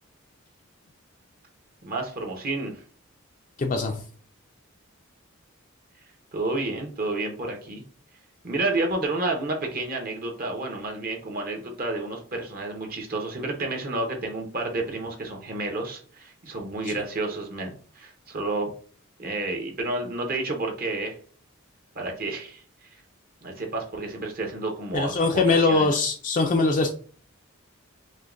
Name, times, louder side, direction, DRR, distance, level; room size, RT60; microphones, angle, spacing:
voice 1, 1.8-2.7 6.3-7.8 8.4-18.7 19.2-21.2 21.9-22.6 23.4-25.9, right 2 dB, 45° right, 2 dB, 0.8 m, -30 dB
voice 2, 3.6-4.0 16.8-16.9 24.9-26.9, left 3 dB, 40° left, 3 dB, 0.4 m, -22 dB
6.2 x 2.2 x 2.5 m, 0.43 s
head